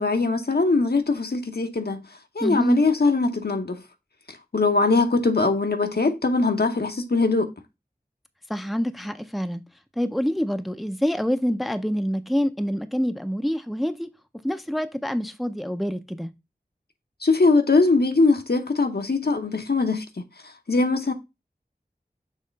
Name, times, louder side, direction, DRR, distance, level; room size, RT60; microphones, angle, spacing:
voice 1, 0.0-2.0 2.3-3.8 4.3-7.5 17.2-21.1, left 3 dB, 70° left, 0.9 m, -22 dB
voice 2, 2.4-2.8 8.5-9.6 10.0-14.1 14.4-16.3, equal, ahead, 0.5 m, -26 dB
6.5 x 3.0 x 5.1 m
wide cardioid pair, 40°, 17 cm